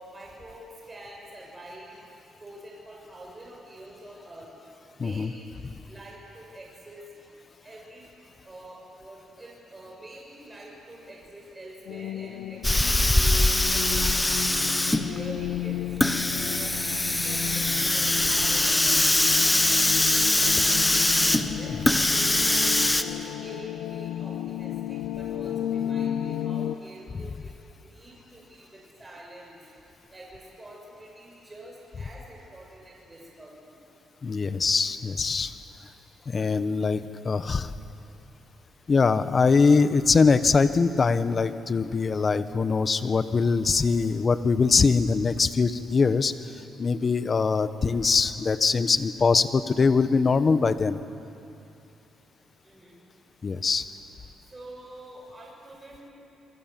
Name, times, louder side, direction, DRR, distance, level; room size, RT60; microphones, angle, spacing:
voice 1, 0.0-1.9 2.4-4.5 5.0-5.5 5.9-7.0 7.6-8.1 8.4-13.0 13.7-14.6 14.9-15.8 16.3-16.7 17.2-21.1 21.5-22.3 22.8-27.5 27.8-29.6 30.1-33.5 43.6-43.9 44.2-44.3 52.6-53.0 54.5-56.1, right 1 dB, 20° right, -3 dB, 7.1 m, -46 dB
voice 2, 5.0-5.3 34.2-35.5 36.3-37.7 38.9-46.3 46.8-51.0 53.4-53.8, left 4 dB, 35° left, 12 dB, 1.2 m, -22 dB
sound 1, 11.9-26.8, left 11 dB, 85° left, 0.6 m, -33 dB
Hiss, 12.6-23.0, left 1 dB, 10° left, 1.4 m, -23 dB
28.0 x 23.5 x 7.7 m, 2.8 s
cardioid pair, 90°, 0 cm